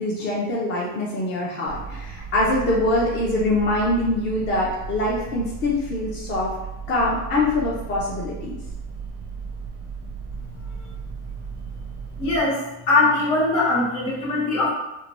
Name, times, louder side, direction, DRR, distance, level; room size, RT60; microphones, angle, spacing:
voice 1, 0.0-6.5 6.9-8.6, left 2 dB, 25° left, -5 dB, 0.4 m, -24 dB
sound 1, 1.7-12.4, right 5 dB, 35° right, 0.4 m, -35 dB
voice 2, 12.2-12.6 12.9-14.7, left 2 dB, 70° left, -4 dB, 1.2 m, -21 dB
2.7 x 2.2 x 3.0 m, 0.95 s
supercardioid pair, 125°, 42 cm